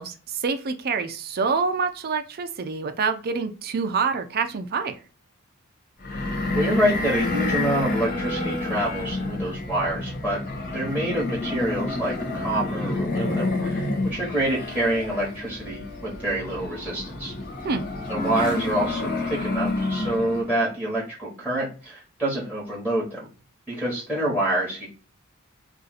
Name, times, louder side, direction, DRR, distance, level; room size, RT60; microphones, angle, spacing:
voice 1, 0.0-5.0 17.6-17.8, right 5 dB, 45° right, 8 dB, 0.5 m, -26 dB
sound 1, 6.0-20.5, left 2 dB, 45° left, 0.8 m, -29 dB
voice 2, 6.5-10.4 10.7-17.3 18.1-23.3 23.7-24.9, right 1 dB, 5° left, -7 dB, 1.3 m, -27 dB
2.6 x 2.5 x 3.9 m, 0.35 s
head